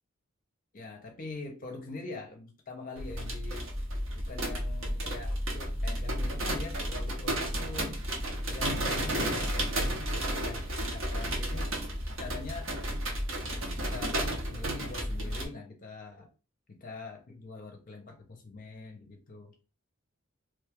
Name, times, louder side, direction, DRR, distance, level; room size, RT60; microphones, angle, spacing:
voice 1, 0.7-3.7 4.1-8.0 8.5-11.7 12.1-12.8 13.8-16.3 16.7-19.5, left 3 dB, 40° left, 3 dB, 0.6 m, -44 dB
sound 1, 3.0-15.4, right 1 dB, 70° right, 0.9 m, -32 dB
3.1 x 2.3 x 3.4 m, 0.32 s
head